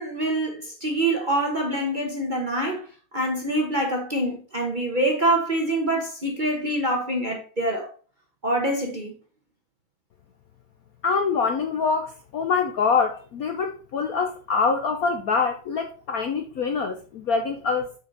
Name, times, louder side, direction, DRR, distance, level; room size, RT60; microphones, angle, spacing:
voice 1, 0.0-2.9 3.1-7.9 8.4-9.1, right 1 dB, 30° right, 1.0 m, -25 dB
voice 2, 11.0-17.9, left 5 dB, 65° left, 0.9 m, -25 dB
6.5 x 5.6 x 4.0 m
omnidirectional pair, 2.2 m